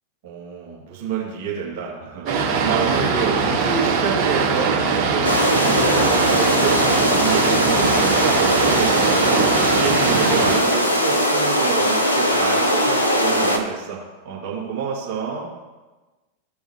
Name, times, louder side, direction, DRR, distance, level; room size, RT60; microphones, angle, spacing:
voice 1, 0.2-15.5, right 6 dB, 50° right, -5 dB, 2.5 m, -28 dB
Boat Water vehicle, 2.3-10.6, right 4 dB, 35° right, 2.8 m, -21 dB
sound 1, 5.2-13.6, equal, 80° left, 1.0 m, -20 dB
15.0 x 5.4 x 3.3 m, 1.2 s
figure-of-eight pair, 90°, 0 cm